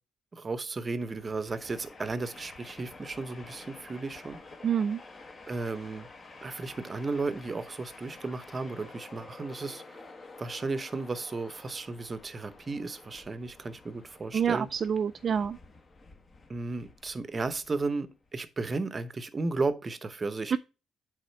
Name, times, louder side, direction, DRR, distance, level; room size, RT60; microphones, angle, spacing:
voice 1, 0.3-4.4 5.5-6.1 6.4-10.0 10.4-14.7 16.5-20.6, right 3 dB, 30° right, 0.8 m, -34 dB
Train, 0.8-18.4, left 3 dB, 35° left, 1.3 m, -50 dB
voice 2, 4.6-5.0 14.3-15.6 20.5-20.6, right 7 dB, 50° right, 0.3 m, -27 dB
8.4 x 3.6 x 4.5 m
cardioid pair, 90°, 0 cm